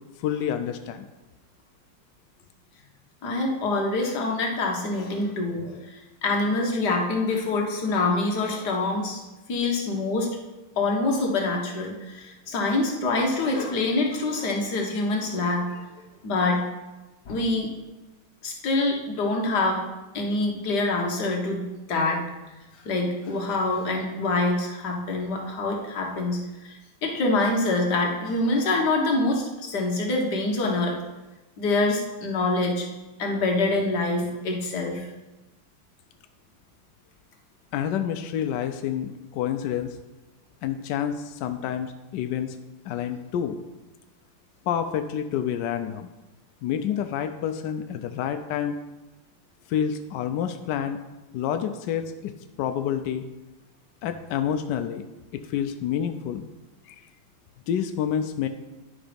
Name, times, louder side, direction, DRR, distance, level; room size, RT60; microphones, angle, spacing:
voice 1, 0.2-1.1 37.7-40.0 40.6-42.6 42.9-43.6 44.7-46.1 46.6-48.8 49.7-51.0 51.3-53.2 54.0-55.1 55.3-56.5 56.9-57.0 57.7-58.5, left 9 dB, 80° left, 8 dB, 1.0 m, -28 dB
voice 2, 3.2-9.2 9.5-10.3 10.8-15.8 16.2-16.6 17.3-17.7 18.4-19.9 20.1-22.2 22.9-26.7 27.0-31.0 31.6-32.9 33.2-35.1, left 2 dB, 55° left, 1 dB, 1.8 m, -25 dB
10.5 x 5.0 x 5.1 m, 1.1 s
omnidirectional pair, 2.4 m